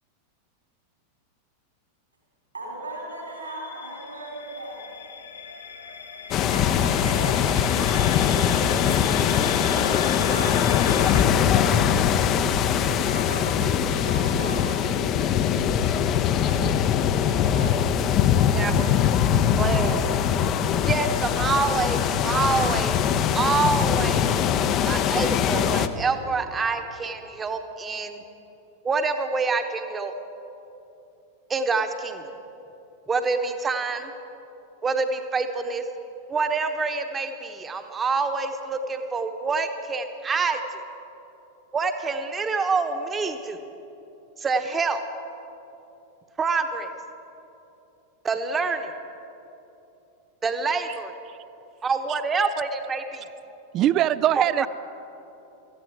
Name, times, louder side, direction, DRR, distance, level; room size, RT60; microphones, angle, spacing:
voice 1, 2.5-4.8 6.5-7.7 9.6-10.6 11.0-11.9 12.8-14.8 16.4-18.0, right 1 dB, 80° right, -2 dB, 3.9 m, -38 dB
sound 1, 3.1-11.2, left 6 dB, 70° left, 1.0 m, -36 dB
sound 2, 6.3-25.9, left 8 dB, 35° left, 0.6 m, -22 dB
voice 2, 18.5-18.9 19.6-20.0 20.9-23.0 23.3-24.4 24.9-28.2 28.8-30.1 31.5-32.3 33.1-34.1 34.8-35.8 36.3-40.6 41.7-43.6 44.4-45.0 46.4-46.9 48.2-48.9 50.4-51.1 51.8-53.2 54.4-54.7, right 4 dB, 20° right, 7 dB, 1.0 m, -26 dB
voice 3, 53.7-54.7, right 12 dB, 35° right, 17 dB, 0.3 m, -22 dB
17.5 x 14.0 x 4.8 m, 2.9 s
figure-of-eight pair, 90°, 0 cm